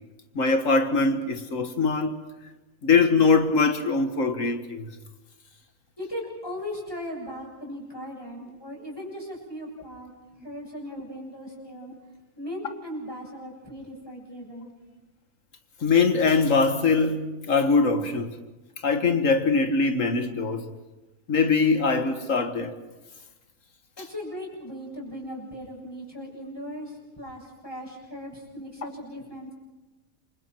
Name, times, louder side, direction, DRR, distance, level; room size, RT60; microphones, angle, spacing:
voice 1, 0.4-2.2 2.8-4.9 15.8-18.3 18.8-20.6 21.3-22.7, left 4 dB, 65° left, 1.9 m, -22 dB
voice 2, 6.0-10.1 10.4-11.9 12.4-14.7 24.0-29.5, equal, 15° left, 7.3 m, -38 dB
28.5 x 25.0 x 4.5 m
omnidirectional pair, 1.5 m